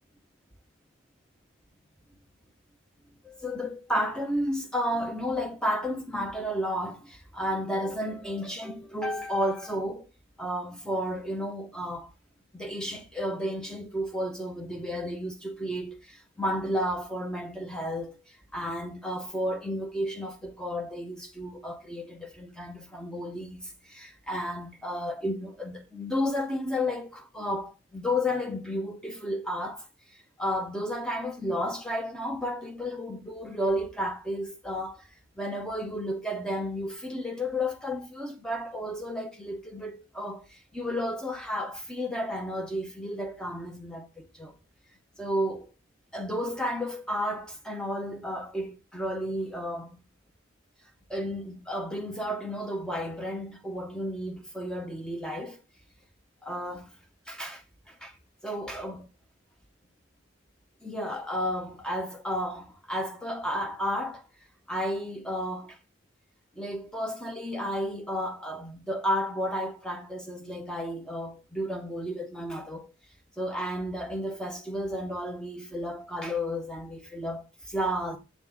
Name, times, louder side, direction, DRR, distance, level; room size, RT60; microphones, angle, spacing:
voice 1, 3.2-10.0 10.4-12.1 12.5-29.9 30.4-35.1 35.4-44.6 45.2-45.7 46.1-50.0 51.1-55.6 56.4-56.9 57.3-58.1 58.4-59.1 60.8-64.3 64.7-65.8 66.5-72.9 73.4-78.2, equal, 5° left, 0.6 m, -32 dB
7.1 x 3.5 x 3.9 m
head